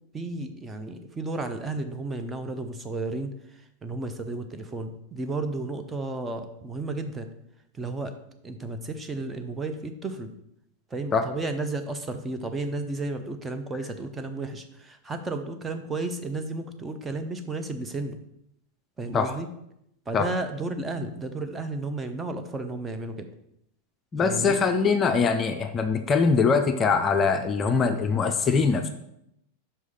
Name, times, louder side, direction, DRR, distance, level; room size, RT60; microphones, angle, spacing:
voice 1, 0.1-3.3 3.8-7.3 7.7-8.1 8.4-10.3 10.9-18.2 19.0-19.5 20.1-23.3 24.2-24.6, right 2 dB, 15° right, 7 dB, 0.7 m, -33 dB
voice 2, 24.1-28.9, left 5 dB, 25° left, 6 dB, 0.5 m, -22 dB
5.6 x 4.8 x 5.4 m, 0.78 s
figure-of-eight pair, 90°, 0 cm